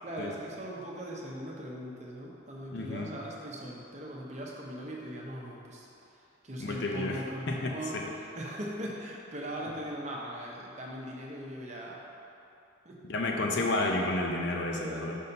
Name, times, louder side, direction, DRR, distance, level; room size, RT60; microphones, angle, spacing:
voice 1, 0.0-12.1 12.8-13.0 14.7-15.2, equal, 35° right, -2 dB, 0.7 m, -40 dB
voice 2, 2.7-3.1 6.6-7.2 7.5-8.0 13.1-15.2, left 2 dB, 55° left, 1 dB, 0.6 m, -31 dB
5.5 x 4.2 x 5.3 m, 2.8 s
head